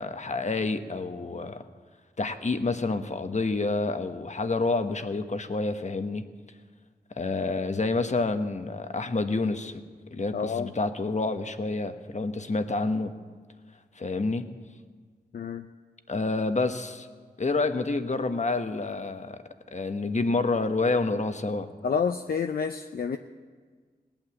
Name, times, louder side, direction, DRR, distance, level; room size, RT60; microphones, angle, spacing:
voice 1, 0.0-1.7 2.2-6.3 7.2-9.8 10.1-13.1 14.0-14.5 16.1-17.1 17.4-19.4 19.7-21.7, left 3 dB, 45° left, 8 dB, 1.1 m, -28 dB
voice 2, 10.3-10.7 15.3-15.6 21.8-23.2, left 6 dB, 60° left, 7 dB, 0.6 m, -28 dB
18.0 x 8.9 x 7.8 m, 1.5 s
cardioid pair, 45°, 17 cm